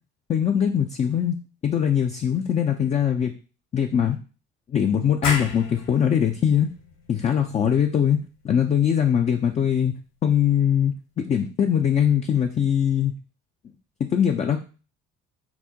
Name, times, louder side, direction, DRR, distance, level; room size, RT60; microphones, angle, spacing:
voice 1, 0.3-1.4 1.6-3.3 3.7-4.2 4.7-6.7 7.1-8.2 8.4-9.9 10.2-13.1 14.1-14.6, left 8 dB, 20° left, 4 dB, 0.3 m, -21 dB
sound 1, 5.2-10.6, left 4 dB, 60° left, 1.2 m, -36 dB
5.8 x 2.0 x 2.8 m, 0.36 s
figure-of-eight pair, 50°, 36 cm